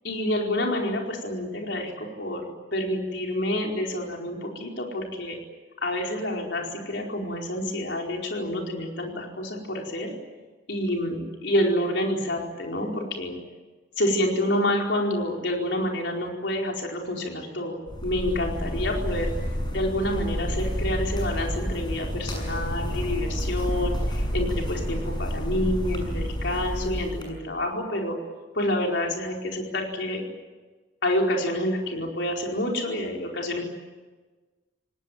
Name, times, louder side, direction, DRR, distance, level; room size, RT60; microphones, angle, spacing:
voice 1, 0.0-5.4 5.8-10.1 10.7-13.4 14.0-19.3 19.7-28.2 28.5-30.2 31.0-33.6, left 1 dB, 70° left, 1 dB, 4.6 m, -28 dB
sound 1, 17.9-27.2, equal, 25° left, 7.2 m, -29 dB
27.5 x 18.5 x 9.1 m, 1.3 s
head